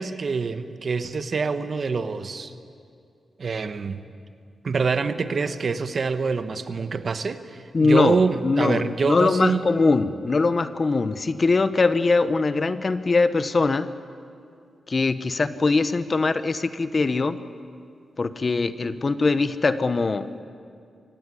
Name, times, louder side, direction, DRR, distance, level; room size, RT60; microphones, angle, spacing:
voice 1, 0.0-2.5 3.4-4.0 4.6-9.6, right 4 dB, 50° right, 10 dB, 1.2 m, -25 dB
voice 2, 7.7-8.2 8.4-13.9 14.9-17.4 18.2-20.3, left 3 dB, 40° left, 13 dB, 0.9 m, -22 dB
24.5 x 18.0 x 9.8 m, 2.4 s
wide cardioid pair, 105°, 0 cm